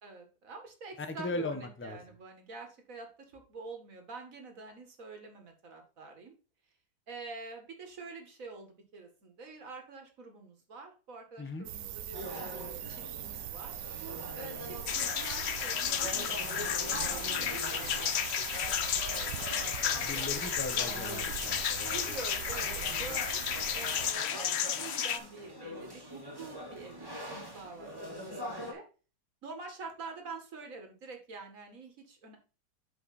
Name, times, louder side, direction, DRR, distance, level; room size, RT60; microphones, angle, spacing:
voice 1, 0.0-6.4 7.1-18.8 19.1-20.5 21.9-23.4 23.7-28.8 29.4-32.4, right 4 dB, 50° right, 4 dB, 2.1 m, -47 dB
voice 2, 1.0-2.0 11.4-11.7 19.9-22.2, left 2 dB, 15° left, 8 dB, 0.4 m, -38 dB
sound 1, 11.6-24.1, right 10 dB, 90° right, 1.3 m, -41 dB
sound 2, 12.1-28.7, equal, 15° right, 1.7 m, -45 dB
sound 3, 14.9-25.2, left 9 dB, 65° left, 0.6 m, -33 dB
7.6 x 5.2 x 4.1 m, 0.35 s
omnidirectional pair, 1.8 m